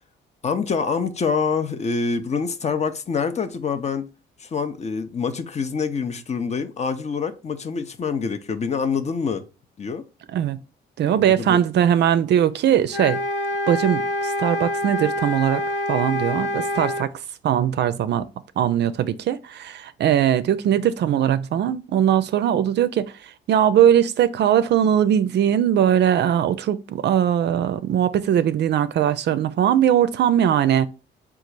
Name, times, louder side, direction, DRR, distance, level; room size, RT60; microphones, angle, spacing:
voice 1, 0.4-4.1 4.4-9.5 9.8-10.0 11.1-11.6, left 5 dB, 35° left, 0.5 m, -26 dB
voice 2, 11.0-13.2 13.7-15.6 15.9-17.1 17.4-18.3 18.6-23.1 23.5-30.9, right 10 dB, 60° right, 0.4 m, -20 dB
sound 1, 12.9-17.1, left 1 dB, 60° left, 0.8 m, -26 dB
3.9 x 2.4 x 4.5 m
cardioid pair, 90°, 20 cm